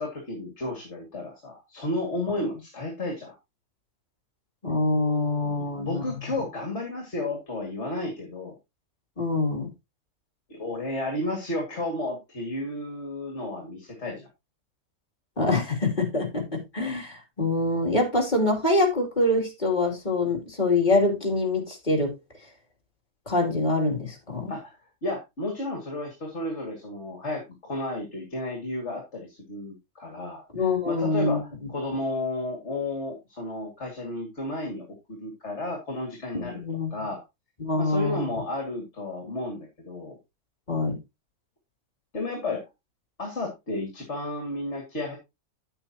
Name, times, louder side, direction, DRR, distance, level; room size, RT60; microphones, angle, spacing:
voice 1, 0.0-3.4 5.4-8.6 10.5-14.3 24.5-30.4 30.9-36.6 36.9-37.2 37.8-40.2 42.1-42.6 43.2-45.2, left 2 dB, 50° left, 2.6 m, -32 dB
voice 2, 4.6-6.0 9.2-9.7 15.4-22.1 23.3-24.5 30.5-31.4 36.3-36.9 37.6-38.3 40.7-41.0, left 2 dB, 30° left, 3.1 m, -25 dB
9.6 x 8.9 x 2.9 m
omnidirectional pair, 1.6 m